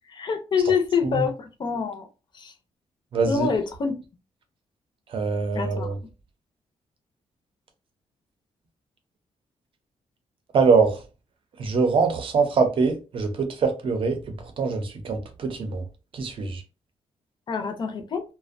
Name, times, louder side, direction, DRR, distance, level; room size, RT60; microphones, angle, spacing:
voice 1, 0.1-2.1 2.3-2.5 3.3-3.9 5.5-5.9 17.5-18.2, left 6 dB, 40° left, 0.5 m, -26 dB
voice 2, 3.1-3.5 5.1-5.9 10.5-11.0 11.6-15.8 16.1-16.6, right 4 dB, 45° right, 0.6 m, -23 dB
2.4 x 2.1 x 2.6 m
wide cardioid pair, 155°, 12 cm